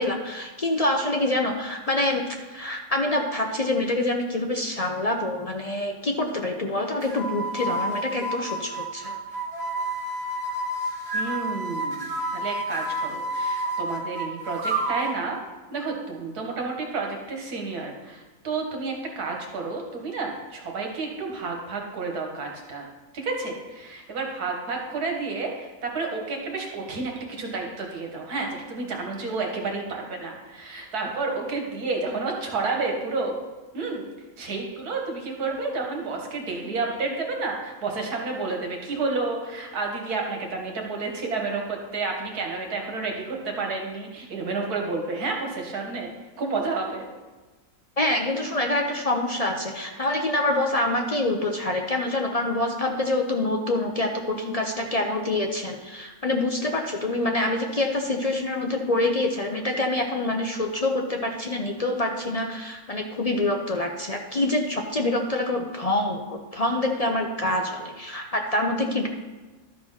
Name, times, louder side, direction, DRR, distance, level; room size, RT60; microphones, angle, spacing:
voice 1, 0.0-9.2 48.0-69.1, left 2 dB, 45° left, 2 dB, 0.5 m, -26 dB
sound 1, 7.0-15.2, right 1 dB, 60° right, 2.8 m, -30 dB
voice 2, 11.1-15.4 15.7-33.4 33.7-34.1 34.4-47.1, right 3 dB, 80° right, 1 dB, 2.0 m, -30 dB
12.0 x 4.4 x 5.7 m, 1.2 s
omnidirectional pair, 1.6 m